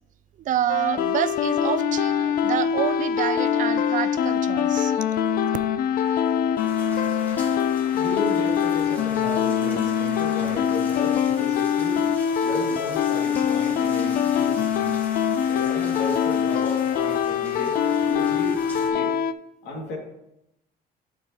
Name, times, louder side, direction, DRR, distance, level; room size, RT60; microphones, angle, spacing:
voice 1, 0.4-5.4, right 11 dB, 50° right, 0.4 m, -28 dB
sound 1, 0.7-19.3, left 8 dB, 60° left, 0.4 m, -23 dB
voice 2, 6.3-6.7 7.9-12.1 12.4-15.0 15.5-17.8 18.1-18.6 18.9-19.1 19.6-20.0, left 2 dB, 80° left, 2.3 m, -34 dB
sound 2, 6.6-18.9, equal, 10° left, 1.6 m, -42 dB
12.5 x 4.7 x 2.9 m
cardioid pair, 110°, 17 cm